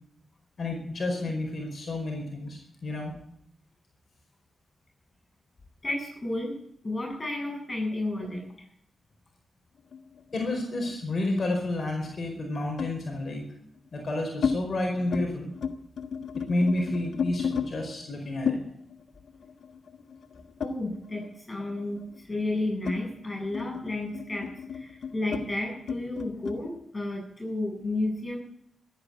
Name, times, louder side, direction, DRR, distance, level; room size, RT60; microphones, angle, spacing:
voice 1, 0.6-3.1 10.3-13.5 13.9-15.5 16.5-18.6, left 2 dB, 55° left, 1 dB, 4.9 m, -30 dB
voice 2, 5.8-6.6 6.8-8.4 20.6-28.4, left 2 dB, 30° left, 0 dB, 7.8 m, -32 dB
sound 1, 9.9-11.5 12.8-13.0 13.8-14.6 14.9-15.3 15.5-17.7 18.5-21.3 21.6-26.6, left 6 dB, 75° left, 1.4 m, -34 dB
13.5 x 10.5 x 9.8 m, 0.70 s
supercardioid pair, 45°, 0 cm